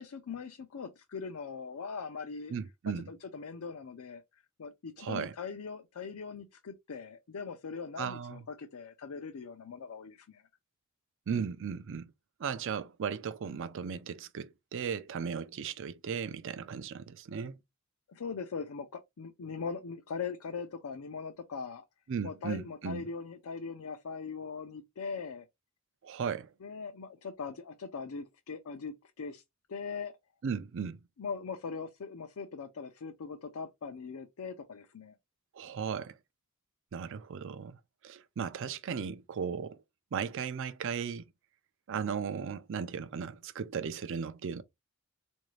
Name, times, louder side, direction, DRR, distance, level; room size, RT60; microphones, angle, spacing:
voice 1, 0.0-2.5 3.1-4.2 4.6-10.4 18.1-21.8 22.2-25.5 26.6-29.4 29.7-30.1 31.2-35.1, left 5 dB, 85° left, 0.5 m, -41 dB
voice 2, 2.5-3.1 5.0-5.3 8.0-8.4 11.3-12.1 12.4-17.5 22.1-23.0 26.0-26.5 30.4-31.0 35.6-36.2 36.9-37.8 38.0-39.8 40.1-41.2 41.9-44.6, right 6 dB, 60° right, 0.4 m, -36 dB
3.7 x 2.6 x 3.1 m
head